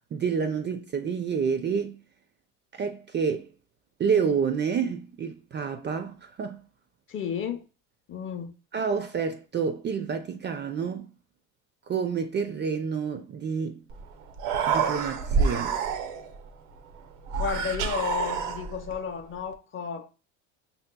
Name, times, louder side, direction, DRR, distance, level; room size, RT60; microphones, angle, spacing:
voice 1, 0.1-2.0 2.7-3.5 4.0-6.6 8.7-11.1 11.9-13.8 14.7-15.8, right 6 dB, 30° right, 0.3 m, -28 dB
voice 2, 7.1-7.7 8.1-8.5 17.4-20.1, left 7 dB, 30° left, 0.5 m, -32 dB
Human voice, 13.9-14.0 14.3-16.4 17.3-19.0, right 6 dB, 85° right, 0.6 m, -27 dB
5.4 x 2.9 x 2.2 m
supercardioid pair, 80°, 39 cm